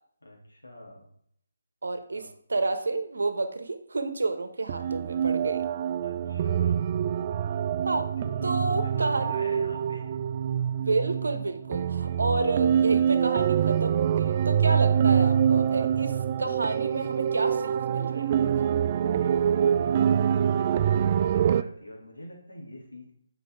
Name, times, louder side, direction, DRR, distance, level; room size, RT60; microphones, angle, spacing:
voice 1, 0.2-1.1 2.1-2.2 6.0-6.8 8.2-10.2 10.7-10.9 12.1-12.3 17.0-17.1 19.0-23.1, left 1 dB, 90° left, -1 dB, 3.3 m, -44 dB
voice 2, 1.8-5.6 7.9-8.1 8.4-9.3 10.8-18.5, right 3 dB, 70° right, 8 dB, 1.2 m, -30 dB
sound 1, 4.7-21.6, right 8 dB, 35° right, 0.4 m, -25 dB
8.2 x 5.9 x 4.7 m, 0.66 s
figure-of-eight pair, 150°, 0 cm